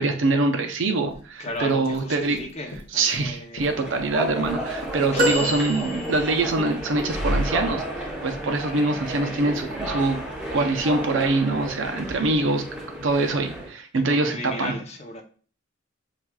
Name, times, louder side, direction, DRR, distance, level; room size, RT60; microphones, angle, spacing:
voice 1, 0.0-2.4 2.9-10.2 10.5-12.6 13.0-14.7, right 2 dB, 65° right, 0.5 m, -24 dB
sound 1, 1.1-1.2 1.5-4.2 4.4-7.1, left 1 dB, 85° left, 0.7 m, -41 dB
voice 2, 1.4-4.0 5.1-5.7 13.9-15.2, left 1 dB, 30° left, 0.5 m, -36 dB
sound 2, 3.6-13.7, right 1 dB, 5° right, 0.8 m, -32 dB
sound 3, 5.2-6.6 9.0-9.2 10.5-10.6, equal, 45° right, 0.8 m, -26 dB
5.7 x 2.4 x 2.2 m
head